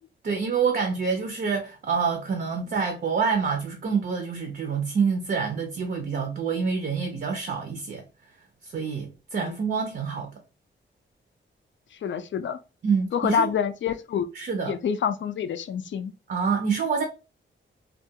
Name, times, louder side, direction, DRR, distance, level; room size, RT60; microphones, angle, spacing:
voice 1, 0.2-8.0 8.6-10.3 12.8-13.5 14.3-14.7 16.3-17.0, right 5 dB, 50° right, 0.5 m, -27 dB
voice 2, 12.0-12.6 13.1-14.3 14.7-16.1, left 8 dB, 65° left, 0.4 m, -27 dB
2.3 x 2.2 x 2.7 m
wide cardioid pair, 125°, 20 cm